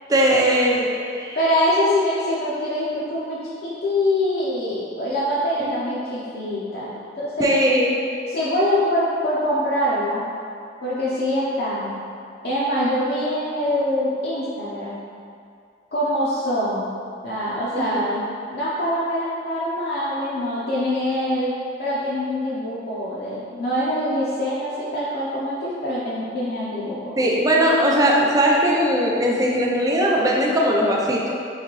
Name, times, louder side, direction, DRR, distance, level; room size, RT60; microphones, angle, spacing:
voice 1, 0.1-1.4 7.4-8.0 17.7-18.0 27.2-31.3, equal, 20° right, -3 dB, 0.4 m, -19 dB
voice 2, 1.4-7.6 8.3-10.3 10.8-12.0 12.4-15.0 15.9-16.9 17.2-27.1, left 1 dB, 60° left, -9 dB, 0.5 m, -24 dB
4.0 x 2.7 x 2.9 m, 2.4 s
head